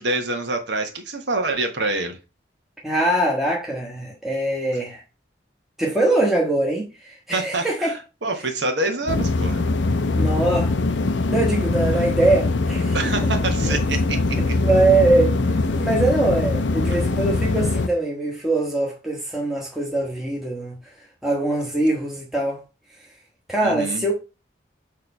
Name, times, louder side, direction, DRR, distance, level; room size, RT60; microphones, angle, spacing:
voice 1, 0.0-2.2 7.3-9.6 12.9-14.5 16.9-17.0 23.6-24.0, right 2 dB, 65° right, 1.3 m, -26 dB
voice 2, 2.8-5.0 5.8-7.9 10.1-10.7 11.3-13.2 13.6-13.8 14.4-22.6 23.5-24.1, right 2 dB, ahead, 1.2 m, -22 dB
sound 1, 9.1-17.9, left 3 dB, 75° left, 0.6 m, -22 dB
6.7 x 3.2 x 5.3 m
head